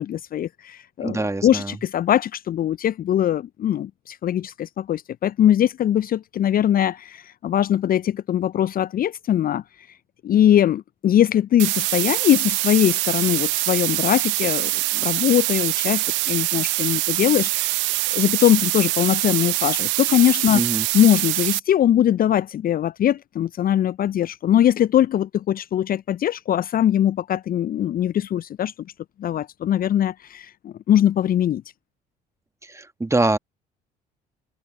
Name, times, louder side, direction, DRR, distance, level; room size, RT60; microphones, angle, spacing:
voice 1, 0.0-9.6 10.2-17.8 18.1-20.6 20.9-28.7 29.2-31.6, left 11 dB, 45° left, 0.8 m, -21 dB
voice 2, 1.0-1.8 20.5-20.9 32.6-33.4, right 2 dB, 15° right, 2.1 m, -24 dB
sound 1, 11.6-21.6, right 24 dB, 60° right, 0.7 m, -24 dB
open air
figure-of-eight pair, 50°, 21 cm